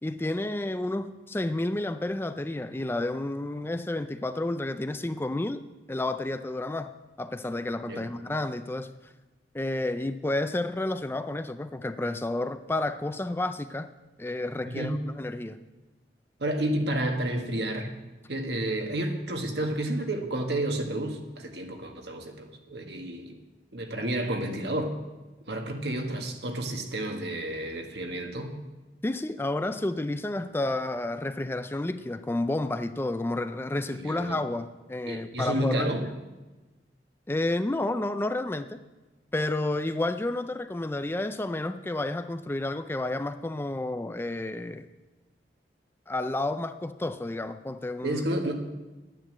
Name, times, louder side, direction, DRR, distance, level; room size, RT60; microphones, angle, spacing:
voice 1, 0.0-5.6 5.9-6.9 7.2-8.9 9.5-13.9 14.2-15.6 29.0-36.1 37.3-38.8 39.3-44.9 46.1-48.2, left 2 dB, 15° left, 10 dB, 0.4 m, -30 dB
voice 2, 14.6-15.0 16.4-17.9 18.3-23.3 23.7-24.9 25.5-28.5 33.9-34.4 35.1-36.0 48.0-48.6, right 1 dB, 70° right, 3 dB, 1.8 m, -31 dB
11.0 x 10.0 x 7.6 m, 1.2 s
head